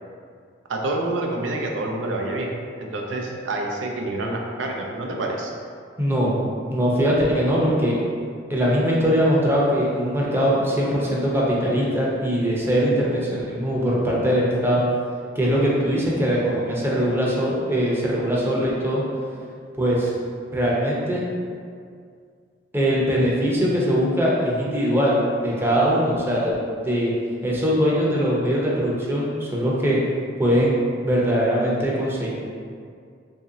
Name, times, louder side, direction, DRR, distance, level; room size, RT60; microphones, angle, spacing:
voice 1, 0.7-2.5 2.8-5.5, right 2 dB, 85° right, 1 dB, 0.5 m, -27 dB
voice 2, 6.0-6.3 6.7-8.0 8.5-14.8 15.4-19.0 19.8-20.1 20.5-21.2 22.7-26.5 26.8-27.1 27.4-30.0 30.4-32.3, equal, 10° right, -5 dB, 0.6 m, -21 dB
2.9 x 2.7 x 3.7 m, 2.2 s
head